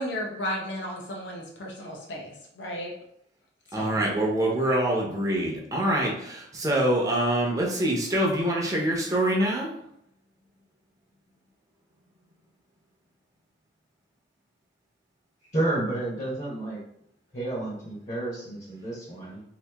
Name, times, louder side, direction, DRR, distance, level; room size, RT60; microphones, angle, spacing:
voice 1, 0.0-2.9 3.7-4.0, equal, 85° left, -1 dB, 0.7 m, -34 dB
voice 2, 3.7-9.7, right 1 dB, 20° right, -3 dB, 0.7 m, -25 dB
voice 3, 15.5-16.8 17.3-19.4, right 2 dB, 40° left, -4 dB, 1.0 m, -30 dB
2.9 x 2.6 x 3.4 m, 0.73 s
head